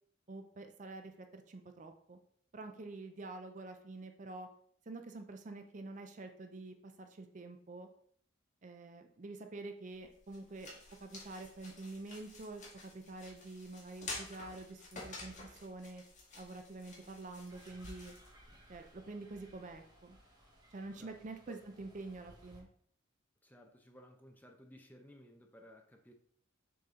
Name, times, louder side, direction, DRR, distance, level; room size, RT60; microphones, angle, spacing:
voice 1, 0.3-2.2 2.5-4.5 4.9-7.9 8.6-10.7 11.0-16.0 16.4-18.1 18.7-20.2 20.7-22.7, right 2 dB, 40° right, 6 dB, 0.5 m, -47 dB
sound 1, 9.9-18.9, left 2 dB, 35° left, 1.8 m, -51 dB
sound 2, 17.5-22.6, equal, 20° right, 1.2 m, -59 dB
voice 2, 23.4-26.1, equal, 10° left, 3 dB, 0.7 m, -57 dB
6.5 x 4.3 x 3.7 m, 0.63 s
head